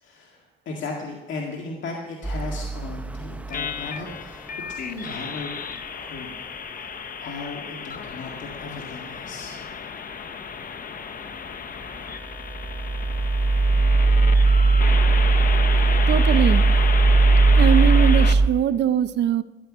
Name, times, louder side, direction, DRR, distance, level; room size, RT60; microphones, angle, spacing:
voice 1, 0.0-5.5 5.9-6.3 6.7-9.6, left 3 dB, 70° left, 0 dB, 1.9 m, -36 dB
sound 1, 2.2-3.8 12.4-18.5, right 3 dB, 5° right, 0.7 m, -18 dB
sound 2, 3.5-18.3, left 6 dB, 45° left, 0.9 m, -33 dB
voice 2, 16.1-16.6 17.6-19.4, right 9 dB, 60° right, 13 dB, 0.7 m, -22 dB
13.5 x 10.5 x 6.2 m, 1.2 s
cardioid pair, 90°, 20 cm